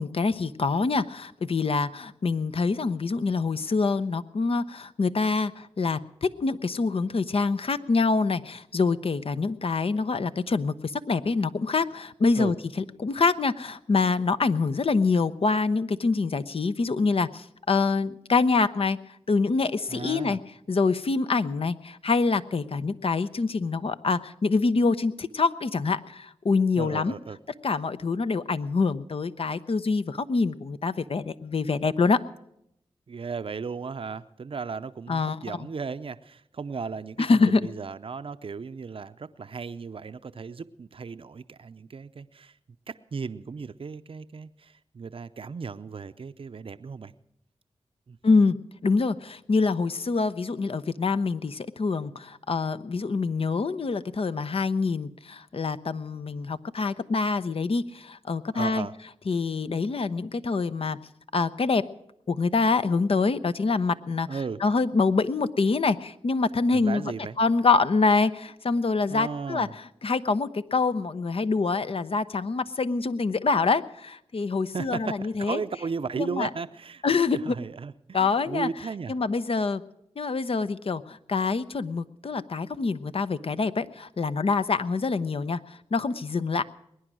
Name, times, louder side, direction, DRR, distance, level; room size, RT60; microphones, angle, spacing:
voice 1, 0.0-12.5 13.0-19.0 19.3-20.4 20.7-27.1 27.6-32.2 35.1-35.7 37.2-37.6 48.2-48.6 48.8-58.9 59.3-61.0 61.3-61.9 62.3-64.3 64.6-75.6 76.2-76.5 77.0-77.4 78.1-78.7 79.1-79.8 80.2-86.6, left 4 dB, 55° left, 13 dB, 0.7 m, -25 dB
voice 2, 19.9-20.4 26.8-27.4 33.1-42.5 42.9-47.1 48.1-48.2 58.5-58.9 64.3-64.6 66.7-67.4 69.1-69.7 74.7-77.0 77.3-79.2, right 5 dB, 55° right, 11 dB, 0.6 m, -35 dB
20.5 x 9.9 x 6.2 m, 0.78 s
cardioid pair, 40°, 11 cm